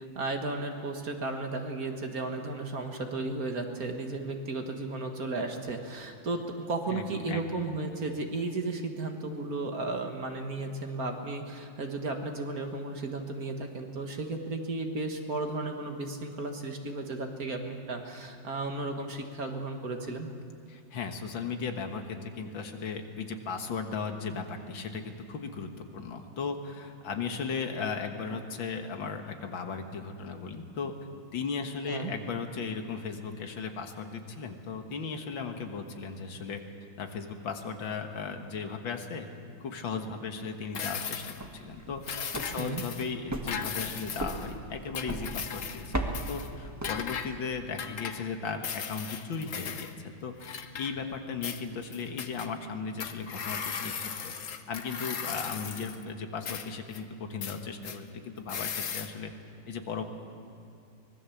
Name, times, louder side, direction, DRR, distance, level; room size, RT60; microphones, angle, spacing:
voice 1, 0.2-20.3 31.9-32.1 42.6-42.8, right 3 dB, 50° right, 4 dB, 2.0 m, -34 dB
voice 2, 6.9-7.6 20.7-30.9 31.3-36.6 37.0-39.3 39.6-50.3 50.8-53.9 54.2-54.3 54.7-59.3 59.7-60.0, left 5 dB, 80° left, 5 dB, 2.2 m, -36 dB
sound 1, 40.7-41.5 42.0-43.1 43.5-44.5 44.9-45.9 46.1-46.5 46.8-47.3 47.8-48.3 48.6-49.9 50.4-51.2 51.4-52.5 53.0-56.0 56.5-57.0 57.4-58.0 58.5-59.1, left 7 dB, 50° left, 1.2 m, -37 dB
sound 2, 41.4-47.5, right 1 dB, 10° right, 1.2 m, -38 dB
24.5 x 20.0 x 7.2 m, 2.5 s
omnidirectional pair, 2.1 m